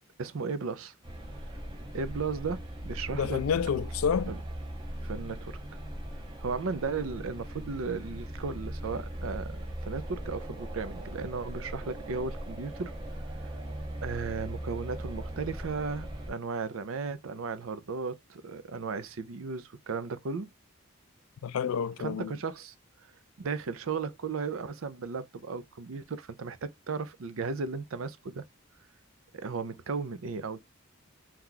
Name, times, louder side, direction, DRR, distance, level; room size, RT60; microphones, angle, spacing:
voice 1, 0.2-0.9 1.9-3.4 4.3-4.4 5.0-5.8 6.4-12.9 13.4-13.5 14.0-20.5 22.0-22.7 23.4-28.4 29.3-30.6, right 4 dB, 75° right, 0.5 m, -35 dB
sound 1, 1.0-16.3, right 1 dB, 20° right, 0.8 m, -39 dB
voice 2, 3.1-4.3 21.4-22.4, left 7 dB, 85° left, 0.4 m, -29 dB
2.9 x 2.3 x 3.7 m
head